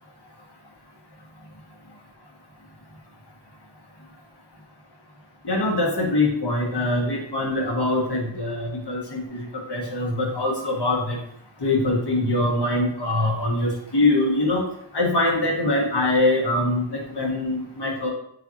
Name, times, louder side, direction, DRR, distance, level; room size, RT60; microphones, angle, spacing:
voice 1, 5.4-11.2 11.6-14.6 14.9-18.1, left 2 dB, 60° left, -1 dB, 1.7 m, -23 dB
7.6 x 4.5 x 2.9 m, 0.70 s
wide cardioid pair, 100°, 46 cm